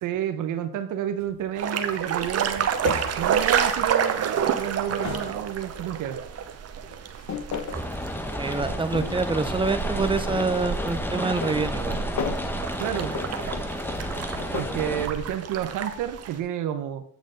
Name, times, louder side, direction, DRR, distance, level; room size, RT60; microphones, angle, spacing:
voice 1, 0.0-2.7 3.2-6.2 12.8-13.1 14.5-17.0, right 10 dB, 85° right, 9 dB, 0.9 m, -30 dB
sound 1, 1.2-1.4 2.8-4.3 4.7-5.8 6.9-7.9 8.6-9.5 10.0-10.7 11.2-12.5 12.9-14.8, left 7 dB, 65° left, 0.9 m, -35 dB
sound 2, 1.6-16.4, right 8 dB, 55° right, 0.9 m, -30 dB
sound 3, 7.7-15.1, left 1 dB, 5° left, 0.9 m, -32 dB
voice 2, 8.4-12.0, right 4 dB, 15° right, 11 dB, 0.7 m, -26 dB
8.4 x 6.3 x 3.8 m, 0.62 s
cardioid pair, 90°, 30 cm